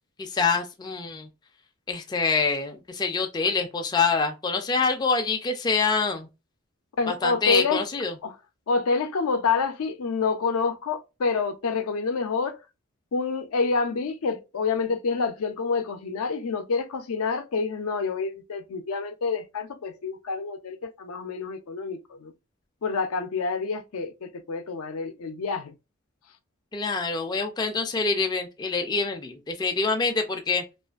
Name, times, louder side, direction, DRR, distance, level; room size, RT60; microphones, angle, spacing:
voice 1, 0.2-1.3 1.9-6.3 7.1-8.1 26.7-30.6, left 4 dB, 20° left, 0.3 m, -26 dB
voice 2, 7.0-7.8 8.2-8.4 8.7-12.6 13.1-22.3 22.8-25.7, left 4 dB, 85° left, 0.5 m, -27 dB
2.4 x 2.4 x 2.3 m
head